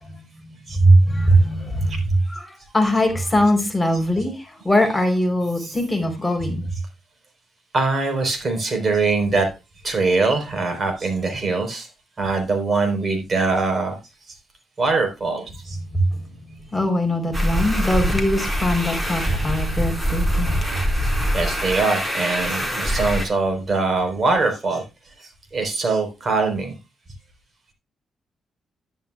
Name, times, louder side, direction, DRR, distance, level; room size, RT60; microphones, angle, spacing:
voice 1, 0.0-6.6 15.9-20.8, equal, 15° left, 3.8 m, -21 dB
voice 2, 7.7-9.5 9.8-11.9 12.2-14.0 14.3-14.4 14.8-15.8 21.0-24.8 25.2-26.7, right 3 dB, 40° right, 4.1 m, -23 dB
sound 1, 17.3-23.2, equal, 5° right, 4.4 m, -23 dB
11.0 x 10.5 x 2.4 m
cardioid pair, 85°, 0 cm